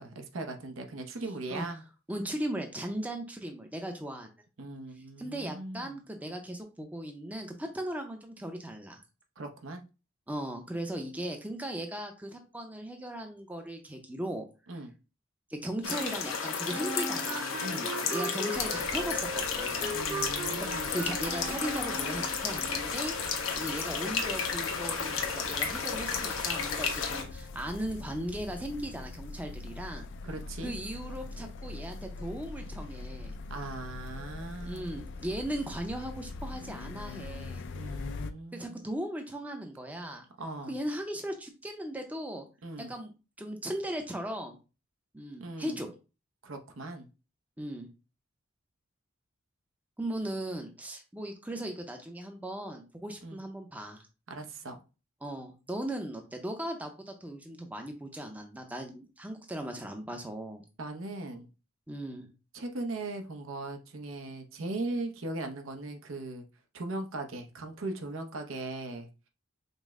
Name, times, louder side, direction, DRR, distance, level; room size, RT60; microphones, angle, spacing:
voice 1, 0.0-1.8 4.6-6.0 9.4-9.9 14.7-14.9 17.6-17.9 19.9-21.0 30.2-30.7 33.5-34.9 37.7-38.8 40.4-40.8 42.6-42.9 45.4-45.8 46.4-47.1 53.2-53.4 54.3-54.8 60.8-61.5 62.5-66.4 66.7-69.1, right 2 dB, 75° right, 0.7 m, -39 dB
voice 2, 2.1-4.3 5.2-9.0 10.3-14.4 15.5-17.7 18.0-19.9 20.6-30.1 30.6-33.4 34.6-37.6 38.5-40.3 40.7-42.4 42.9-43.1 43.4-44.6 45.1-45.9 47.6-47.9 50.0-54.1 55.2-60.6 61.9-62.3, right 1 dB, 5° right, 0.5 m, -37 dB
sound 1, 15.8-27.2, left 5 dB, 85° left, 0.8 m, -32 dB
Wind instrument woodwind instrument, 16.7-22.4, right 2 dB, 30° right, 0.8 m, -38 dB
sound 2, 18.5-38.3, left 3 dB, 60° left, 0.3 m, -43 dB
5.2 x 2.1 x 3.6 m
head